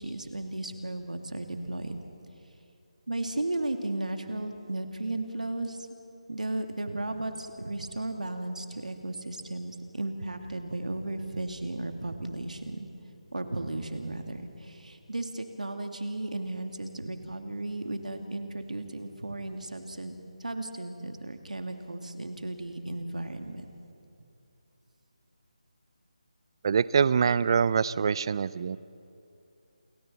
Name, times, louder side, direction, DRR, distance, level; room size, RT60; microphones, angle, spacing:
voice 1, 0.0-2.0 3.1-5.8 6.3-12.9 13.3-20.1 20.4-23.7, right 2 dB, 85° right, 6 dB, 2.1 m, -35 dB
voice 2, 26.6-28.8, right 6 dB, 40° right, 19 dB, 0.5 m, -24 dB
28.0 x 23.0 x 4.2 m, 2.6 s
figure-of-eight pair, 160°, 4 cm